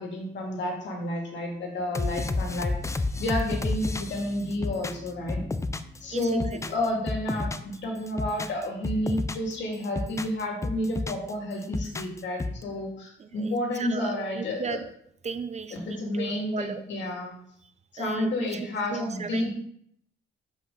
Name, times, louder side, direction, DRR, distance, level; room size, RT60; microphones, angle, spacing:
voice 1, 0.0-2.7 3.2-5.5 6.0-14.8 15.7-17.3 17.9-19.5, left 1 dB, 65° left, 0 dB, 2.3 m, -30 dB
sound 1, 1.9-6.0 6.3-7.8 8.1-9.5 9.8-11.3 11.6-12.6, left 3 dB, 15° left, 0.5 m, -31 dB
voice 2, 6.1-6.6 7.8-7.9 13.2-14.9 15.2-16.8 17.6-19.5, right 5 dB, 35° right, 10 dB, 0.6 m, -36 dB
7.4 x 5.2 x 4.0 m, 0.69 s
cardioid pair, 90°, 20 cm